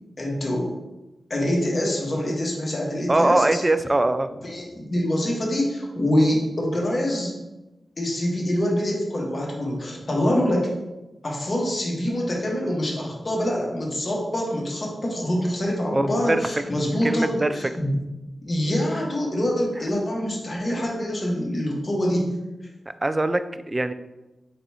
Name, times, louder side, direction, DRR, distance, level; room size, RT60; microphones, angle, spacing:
voice 1, 0.2-0.8 1.3-3.6 4.4-7.3 8.0-10.7 11.2-18.0 18.5-22.3, equal, 45° left, -2 dB, 1.3 m, -25 dB
voice 2, 3.1-4.3 15.9-16.4 17.0-17.5 23.0-23.9, right 2 dB, 25° right, 11 dB, 0.3 m, -22 dB
4.6 x 4.0 x 2.8 m, 1.0 s
cardioid pair, 55°, 0 cm